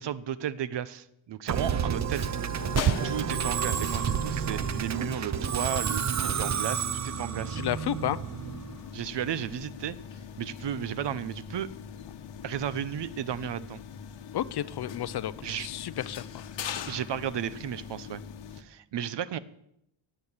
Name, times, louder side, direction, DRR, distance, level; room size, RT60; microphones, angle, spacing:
voice 1, 0.0-2.5 3.0-7.6 8.9-10.0 10.4-11.7 12.4-13.8 15.4-15.7 16.9-18.2 18.6-19.4, right 9 dB, 70° right, 16 dB, 0.9 m, -34 dB
Musical instrument, 1.5-8.8, right 8 dB, 40° right, 0.6 m, -30 dB
sound 1, 2.6-18.6, left 8 dB, 75° left, 1.3 m, -42 dB
voice 2, 7.5-8.2 14.3-15.3 15.6-16.6, left 11 dB, 60° left, 18 dB, 0.6 m, -32 dB
17.5 x 8.2 x 7.3 m, 0.78 s
wide cardioid pair, 160°, 44 cm